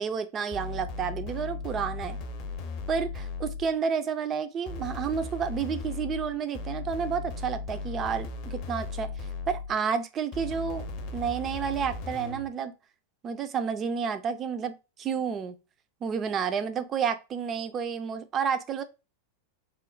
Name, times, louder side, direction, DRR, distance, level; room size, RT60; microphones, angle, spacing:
voice 1, 0.0-2.2 2.9-9.1 9.5-10.9 11.1-12.7 13.2-14.7 15.0-15.6 16.0-18.8, right 6 dB, 25° right, 0.4 m, -30 dB
sound 1, 0.5-3.8 4.7-9.8 10.3-12.5, left 3 dB, 40° left, 0.6 m, -37 dB
3.1 x 2.0 x 3.8 m
figure-of-eight pair, 90°, 0 cm